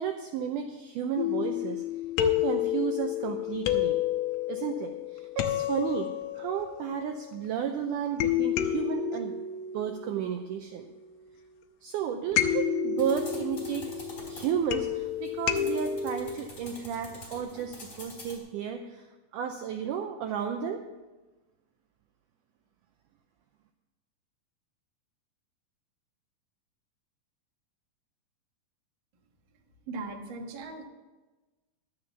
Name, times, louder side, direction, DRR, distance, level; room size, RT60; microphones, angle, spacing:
voice 1, 0.0-1.8 2.2-4.0 4.5-6.1 6.4-9.3 9.7-10.9 11.8-13.9 14.3-19.1 19.3-20.8, right 8 dB, 85° right, 5 dB, 1.8 m, -33 dB
sound 1, 1.2-7.6 8.2-11.2 12.4-16.2, left 10 dB, 75° left, 2.2 m, -30 dB
sound 2, 13.0-18.4, left 1 dB, 25° left, 2.8 m, -47 dB
voice 2, 29.9-30.9, right 3 dB, 70° right, 2 dB, 1.1 m, -38 dB
12.0 x 6.6 x 7.0 m, 1.2 s
omnidirectional pair, 4.4 m